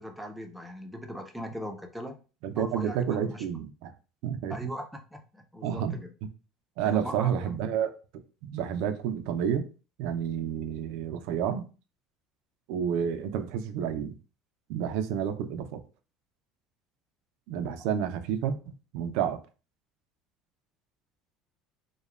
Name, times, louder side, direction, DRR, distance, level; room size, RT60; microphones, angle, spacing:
voice 1, 0.0-2.2 2.6-3.4 4.5-6.1 6.8-7.6, equal, ahead, 0.5 m, -40 dB
voice 2, 2.4-3.9 4.2-4.7 5.6-6.0 6.8-9.7 10.0-11.7 12.7-14.2 14.7-15.8 17.5-19.4, right 8 dB, 75° right, 0.3 m, -30 dB
3.0 x 2.1 x 2.3 m
cardioid pair, 125°, 0 cm